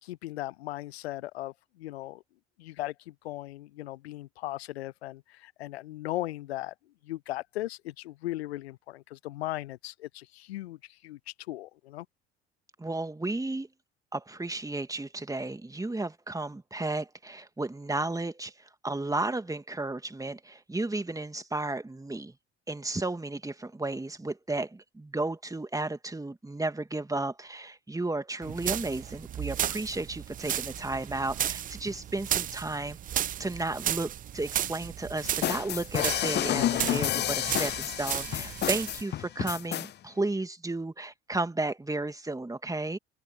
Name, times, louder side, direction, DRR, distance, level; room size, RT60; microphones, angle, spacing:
voice 1, 0.0-2.2 2.6-6.7 7.0-12.1, left 16 dB, 70° left, 0.9 m, -38 dB
voice 2, 12.8-13.7 14.1-22.3 22.7-33.0 33.4-43.0, right 2 dB, 10° right, 2.6 m, -33 dB
sound 1, 28.4-39.0, right 10 dB, 25° right, 0.5 m, -34 dB
sound 2, 35.2-39.9, left 12 dB, 35° left, 0.6 m, -30 dB
figure-of-eight pair, 55°, 33 cm